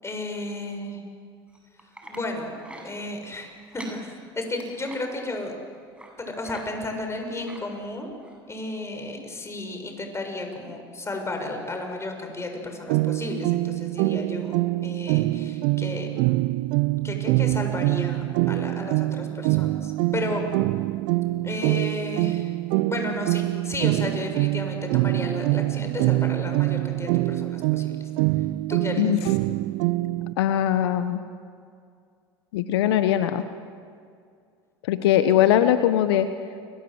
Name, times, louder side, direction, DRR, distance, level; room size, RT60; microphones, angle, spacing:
voice 1, 0.0-1.0 2.1-2.6 2.8-4.0 4.4-5.5 6.2-8.2 8.5-16.1 17.0-20.5 21.4-22.5 22.9-27.9 28.7-29.0, left 2 dB, 20° left, 4 dB, 7.1 m, -33 dB
sound 1, 1.5-2.2 2.6-2.9 3.6-4.0 4.4-5.0 5.9-6.1 6.4-6.6 6.9-7.6 8.2-8.4 8.8-8.9, right 2 dB, 10° right, 7.9 m, -44 dB
sound 2, 12.9-30.3, right 19 dB, 65° right, 0.7 m, -25 dB
voice 2, 30.4-31.2 32.5-33.4 34.8-36.3, left 11 dB, 75° left, 10 dB, 1.2 m, -21 dB
30.0 x 23.0 x 8.1 m, 2.2 s
hypercardioid pair, 80°, 13 cm